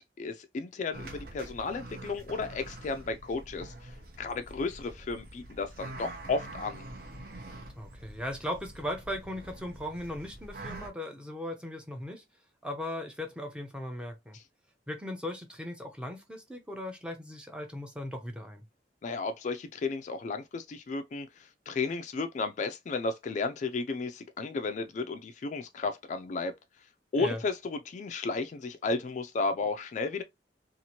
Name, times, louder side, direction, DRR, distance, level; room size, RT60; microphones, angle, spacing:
voice 1, 0.2-3.9 4.2-6.8 19.0-21.3 21.7-26.5 27.1-30.2, left 3 dB, 45° left, 0.3 m, -33 dB
sound 1, 0.9-10.9, right 1 dB, 55° right, 0.8 m, -45 dB
voice 2, 7.8-12.2 12.6-14.4 14.9-18.7 27.1-27.4, left 1 dB, 5° right, 0.6 m, -38 dB
2.8 x 2.5 x 2.8 m
head